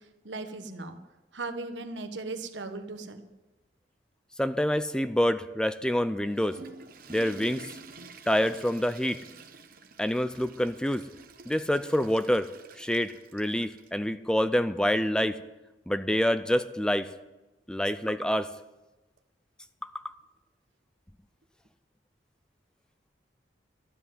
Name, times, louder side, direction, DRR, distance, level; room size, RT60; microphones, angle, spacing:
voice 1, 0.2-1.0 1.3-3.3, right 3 dB, 85° right, 7 dB, 1.2 m, -37 dB
voice 2, 4.4-6.6 7.1-7.7 8.3-9.2 10.0-11.0 11.5-12.5 12.8-15.4 15.9-17.1 17.7-18.5 19.8-20.1, equal, 5° left, 12 dB, 0.4 m, -27 dB
Water / Toilet flush, 6.1-14.0, right 4 dB, 50° right, 1.0 m, -48 dB
12.5 x 7.7 x 9.5 m, 1.1 s
head